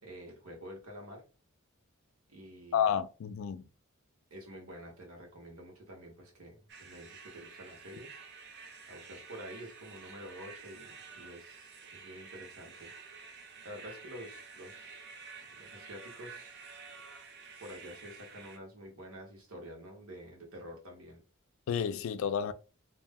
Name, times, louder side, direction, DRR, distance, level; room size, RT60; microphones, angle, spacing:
voice 1, 0.0-1.2 2.3-2.9 4.3-8.2 8.9-12.9 13.6-15.1 15.6-16.6 17.6-21.2, equal, 85° right, 1.1 m, -48 dB
voice 2, 2.7-3.6 21.7-22.5, left 8 dB, 65° left, 0.3 m, -30 dB
sound 1, 6.7-18.6, right 5 dB, 55° right, 0.5 m, -50 dB
2.5 x 2.0 x 3.4 m
head